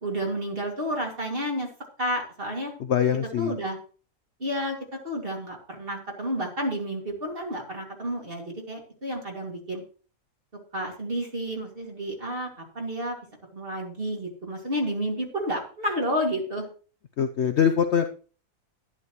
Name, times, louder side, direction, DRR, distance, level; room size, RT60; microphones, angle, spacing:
voice 1, 0.0-1.7 2.0-2.7 3.4-3.8 4.4-4.8 5.0-9.8 10.7-13.2 13.5-16.7, equal, 35° right, 0 dB, 2.6 m, -30 dB
voice 2, 2.9-3.5 17.2-18.1, left 8 dB, 60° left, 9 dB, 0.7 m, -23 dB
11.0 x 11.0 x 3.1 m, 0.40 s
omnidirectional pair, 1.6 m